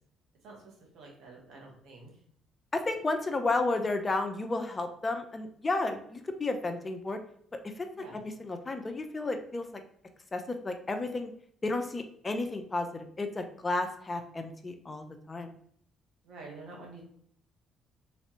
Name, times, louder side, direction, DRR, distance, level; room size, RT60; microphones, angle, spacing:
voice 1, 0.4-2.2 8.0-8.2 16.2-17.0, right 3 dB, 70° right, -1 dB, 1.2 m, -48 dB
voice 2, 2.7-7.2 7.8-7.9 8.2-9.7 10.3-11.3 11.6-15.5, left 2 dB, 30° left, 6 dB, 0.5 m, -32 dB
3.3 x 3.1 x 2.9 m, 0.65 s
supercardioid pair, 75°, 0 cm